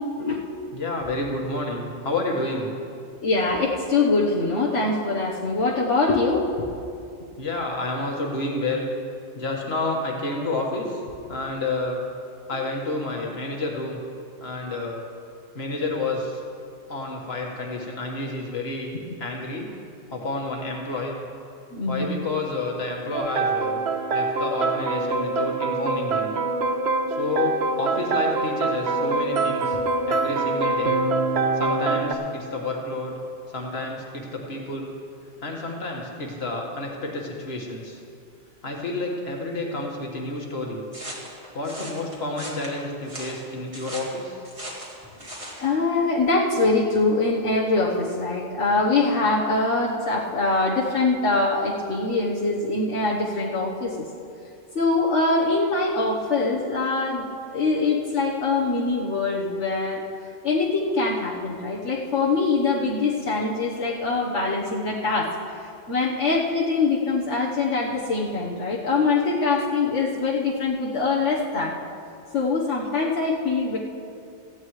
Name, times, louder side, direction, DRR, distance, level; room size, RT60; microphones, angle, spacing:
voice 1, 0.7-2.8 7.4-8.9 9.3-10.9 11.3-12.0 12.5-14.0 14.4-15.0 15.6-16.4 16.9-18.9 19.2-19.8 20.1-21.2 21.9-23.8 24.1-26.4 27.1-29.8 30.1-31.0 31.5-33.1 33.5-34.9 35.4-38.0 38.6-40.8 41.5-44.4, left 2 dB, 60° left, -1 dB, 1.9 m, -29 dB
voice 2, 3.2-6.7 21.7-22.1 45.6-54.1 54.7-57.3 57.5-60.0 60.4-65.6 65.9-71.8 72.3-73.8, left 3 dB, 75° left, -5 dB, 1.6 m, -23 dB
sound 1, 23.1-32.1, right 3 dB, 65° right, 1.0 m, -24 dB
sound 2, 40.9-45.6, right 1 dB, 25° right, 2.3 m, -38 dB
17.5 x 14.5 x 3.2 m, 2.4 s
omnidirectional pair, 1.2 m